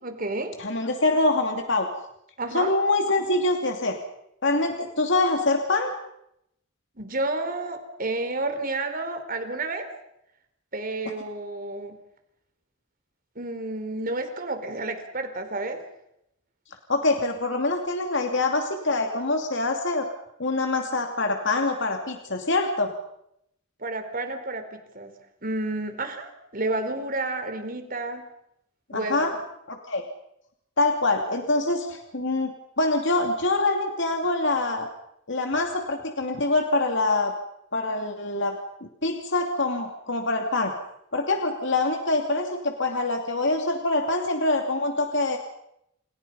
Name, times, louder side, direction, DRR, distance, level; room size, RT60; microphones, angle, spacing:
voice 1, 0.0-0.5 2.4-2.7 7.0-9.9 10.7-12.0 13.4-15.8 23.8-24.6 24.9-25.1 25.4-28.2 28.9-29.4, right 2 dB, 45° right, 7 dB, 4.3 m, -30 dB
voice 2, 0.6-1.9 2.5-4.0 4.4-5.9 16.9-20.1 20.4-22.9 28.9-29.3 29.7-30.0 30.8-34.9 35.3-37.3 37.7-40.7 41.1-45.4, left 2 dB, 60° left, 4 dB, 2.6 m, -25 dB
29.5 x 29.0 x 5.6 m, 0.78 s
head